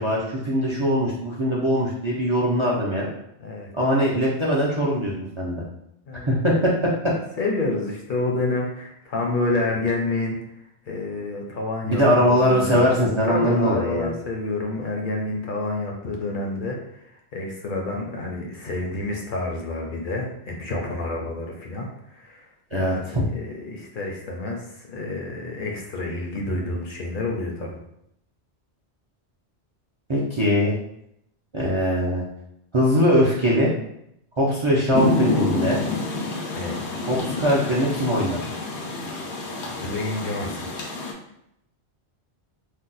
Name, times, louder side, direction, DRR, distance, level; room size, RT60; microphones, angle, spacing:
voice 1, 0.0-3.1 3.7-5.6 6.3-6.7 7.0-7.1 11.8-14.1 22.7-23.3 30.1-30.7 31.5-32.2 32.7-33.7 34.4-35.8 37.1-38.5, equal, 45° right, -5 dB, 0.4 m, -21 dB
voice 2, 7.4-10.4 10.9-17.0 17.3-21.9 22.1-22.5 22.7-27.8 36.5-36.8 39.8-40.7, left 2 dB, 60° left, 0 dB, 0.6 m, -29 dB
Rain, 34.9-41.1, left 2 dB, 90° left, 0.9 m, -27 dB
2.6 x 2.2 x 3.9 m, 0.78 s
omnidirectional pair, 1.1 m